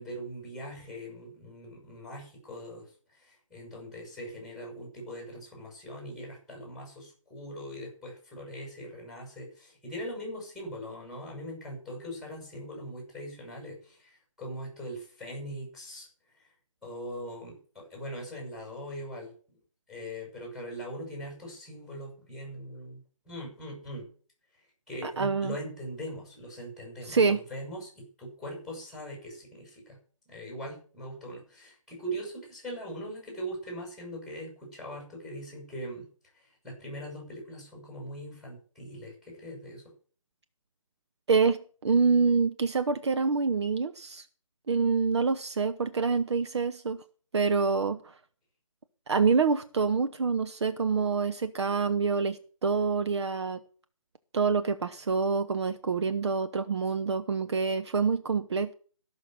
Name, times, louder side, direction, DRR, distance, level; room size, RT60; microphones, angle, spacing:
voice 1, 0.0-16.1 16.3-16.5 16.8-19.6 19.9-24.1 24.5-30.0 30.3-39.9, equal, ahead, 7.4 m, -41 dB
voice 2, 25.0-25.6 27.1-27.4 41.3-44.3 44.7-47.0 47.3-48.1 49.1-53.6 54.3-58.7, right 4 dB, 55° right, 0.9 m, -26 dB
14.5 x 6.5 x 8.0 m
figure-of-eight pair, 155°, 17 cm